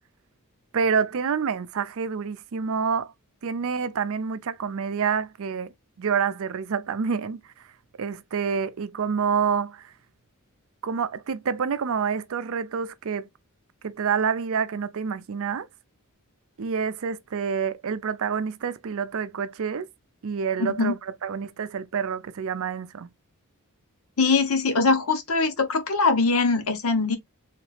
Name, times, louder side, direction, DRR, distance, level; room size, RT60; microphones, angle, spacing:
voice 1, 0.7-3.1 3.4-5.7 6.0-7.4 8.0-9.8 10.8-13.3 13.8-15.7 16.6-19.9 20.2-23.1, right 6 dB, 65° right, 0.5 m, -27 dB
voice 2, 20.6-20.9 24.2-27.2, left 4 dB, 70° left, 1.0 m, -22 dB
3.2 x 2.9 x 3.1 m
head